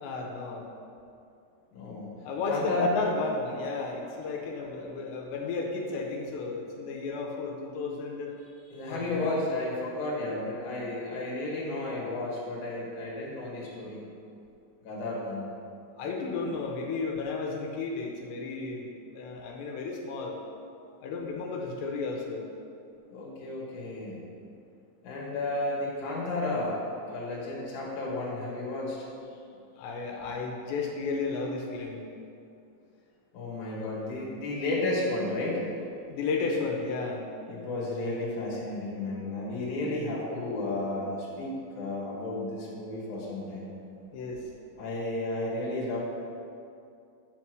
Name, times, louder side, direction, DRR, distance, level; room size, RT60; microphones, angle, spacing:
voice 1, 0.0-0.7 2.2-8.3 8.9-9.2 16.0-20.4 21.0-22.5 29.8-32.1 36.1-37.2 44.1-44.4, left 4 dB, 75° left, 0 dB, 2.9 m, -33 dB
voice 2, 1.7-2.1 2.5-2.9 8.7-14.1 14.8-15.5 23.1-24.2 25.0-26.8 27.1-29.1 33.3-35.9 37.5-43.7 44.8-46.0, left 2 dB, 55° left, -5 dB, 2.6 m, -32 dB
8.6 x 4.3 x 6.1 m, 2.5 s
omnidirectional pair, 5.3 m